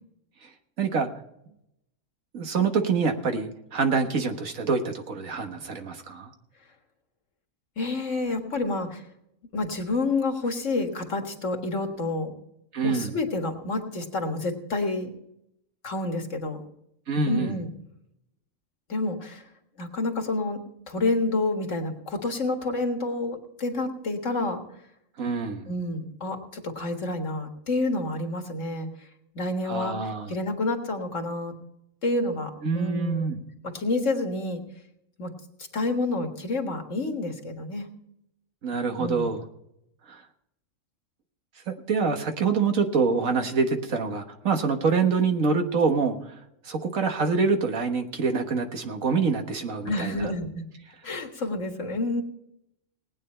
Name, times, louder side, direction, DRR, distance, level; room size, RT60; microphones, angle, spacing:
voice 1, 0.8-1.1 2.3-6.3 12.7-13.1 17.1-17.5 25.2-25.7 29.6-30.3 32.6-33.4 38.6-39.5 40.1-40.2 41.7-46.3 46.6-50.3, right 4 dB, 90° right, 5 dB, 1.8 m, -26 dB
voice 2, 7.8-9.0 9.5-12.4 12.8-15.1 15.8-16.6 17.3-17.7 18.9-19.4 19.8-20.6 20.9-24.6 25.7-28.9 29.3-30.0 30.3-31.5 32.0-33.3 33.7-34.6 35.2-35.3 35.7-37.9 39.0-39.3 49.9-50.6 51.0-52.2, left 2 dB, 65° left, 4 dB, 2.0 m, -28 dB
19.0 x 9.2 x 4.3 m, 0.79 s
omnidirectional pair, 1.4 m